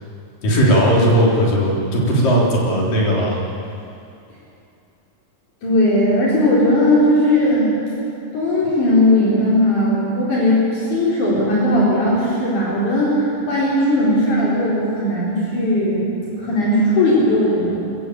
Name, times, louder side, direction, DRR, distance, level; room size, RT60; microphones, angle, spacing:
voice 1, 0.4-3.4, equal, 80° left, -3 dB, 5.3 m, -17 dB
voice 2, 5.6-7.7 8.3-16.0 16.4-18.0, left 1 dB, 65° left, -7 dB, 5.5 m, -17 dB
24.0 x 15.0 x 8.6 m, 2.6 s
omnidirectional pair, 3.8 m